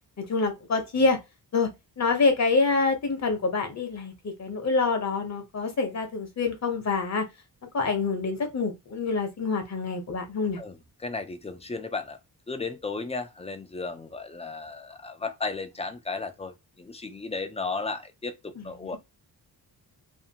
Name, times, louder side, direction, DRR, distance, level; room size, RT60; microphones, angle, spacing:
voice 1, 0.2-1.2 1.5-1.7 2.0-7.3 7.7-10.6 18.6-19.0, left 4 dB, 40° left, 0.7 m, -26 dB
voice 2, 11.0-12.2 12.5-19.0, left 3 dB, 15° left, 0.3 m, -34 dB
2.5 x 2.5 x 2.7 m
wide cardioid pair, 125°, 41 cm